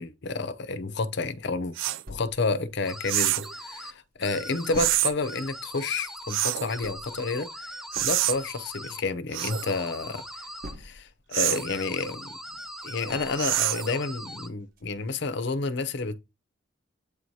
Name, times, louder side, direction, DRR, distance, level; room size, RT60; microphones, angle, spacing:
voice 1, 0.0-1.8 2.1-7.7 8.0-10.2 10.8-12.4 12.8-16.1, left 3 dB, 65° left, 0.7 m, -30 dB
sound 1, 1.8-2.0 3.1-3.5 4.8-5.1 6.3-6.7 7.9-8.4 9.3-9.7 11.3-11.7 13.4-13.9, right 15 dB, 85° right, 0.3 m, -26 dB
sound 2, 2.1-3.6 4.0-4.1 4.3-11.3 11.7-13.8 14.3-14.4 14.8-14.9, right 1 dB, 50° right, 1.0 m, -45 dB
sound 3, 2.8-3.9 4.2-4.9 5.2-9.0 9.4-10.7 11.5-14.5, equal, ahead, 0.5 m, -41 dB
8.3 x 2.8 x 4.6 m
head